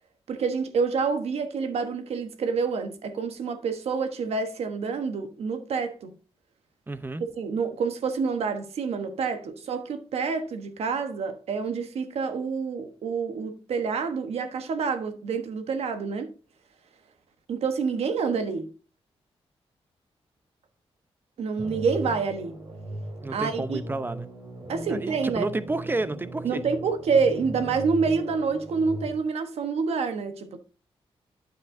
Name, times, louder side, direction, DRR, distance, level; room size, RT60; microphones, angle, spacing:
voice 1, 0.3-6.2 7.4-16.3 17.5-18.7 21.4-22.6 23.3-23.8 24.7-25.5 26.4-30.6, right 5 dB, 85° right, 1.1 m, -27 dB
voice 2, 6.9-7.2 23.2-24.3 24.9-26.6, right 2 dB, 20° right, 0.7 m, -30 dB
sound 1, 21.6-29.1, right 1 dB, 45° right, 3.7 m, -38 dB
9.3 x 7.5 x 2.6 m
cardioid pair, 100°, 10 cm